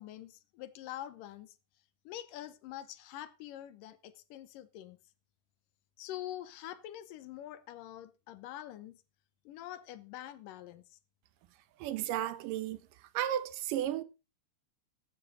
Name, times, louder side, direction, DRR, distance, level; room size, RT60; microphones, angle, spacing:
voice 1, 0.0-1.5 2.1-5.0 6.0-9.0 9.5-10.8, left 12 dB, 80° left, 2.5 m, -45 dB
voice 2, 11.8-12.8 13.1-14.0, right 11 dB, 80° right, 2.6 m, -33 dB
15.0 x 10.5 x 3.9 m
omnidirectional pair, 3.9 m